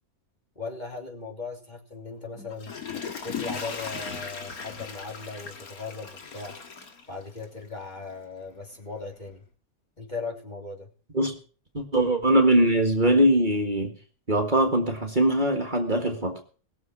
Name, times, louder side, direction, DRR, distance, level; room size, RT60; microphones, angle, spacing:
voice 1, 0.5-2.7 3.2-6.6 7.1-9.4 10.0-10.9, left 4 dB, 30° left, 0 dB, 2.9 m, -38 dB
Water / Toilet flush, 2.4-7.7 8.1-8.2, left 6 dB, 85° left, 2.2 m, -37 dB
voice 2, 11.7-13.9 14.3-16.4, right 1 dB, 35° right, 3 dB, 1.9 m, -22 dB
20.0 x 7.0 x 6.0 m, 0.40 s
omnidirectional pair, 1.5 m